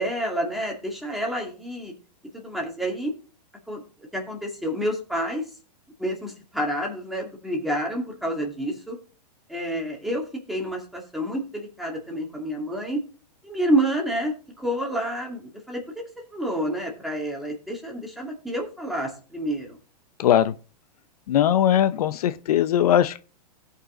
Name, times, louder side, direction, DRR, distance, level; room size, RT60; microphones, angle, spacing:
voice 1, 0.0-1.9 2.3-3.1 3.7-3.8 4.1-5.5 6.0-9.0 9.5-13.0 13.4-16.0 16.3-19.8, right 1 dB, ahead, 2.4 m, -28 dB
voice 2, 20.2-20.5 21.3-23.2, left 10 dB, 65° left, 0.7 m, -20 dB
16.5 x 5.5 x 3.8 m
hypercardioid pair, 155°, 21 cm